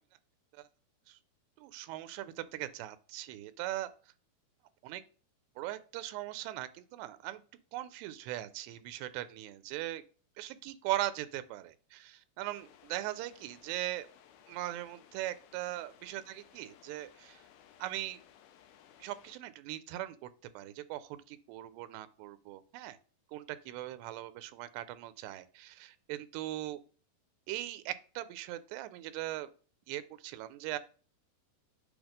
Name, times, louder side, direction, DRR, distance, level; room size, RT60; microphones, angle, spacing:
voice 1, 1.6-3.9 4.8-5.0 5.6-7.4 7.7-10.0 10.4-14.1 14.5-17.4 17.8-18.2 19.0-20.3 20.5-23.0 23.3-26.8 27.5-29.5 29.9-30.8, right 15 dB, 85° right, 13 dB, 2.7 m, -40 dB
sound 1, 12.4-19.4, left 9 dB, 75° left, 2.4 m, -60 dB
8.2 x 3.1 x 5.0 m, 0.39 s
omnidirectional pair, 4.7 m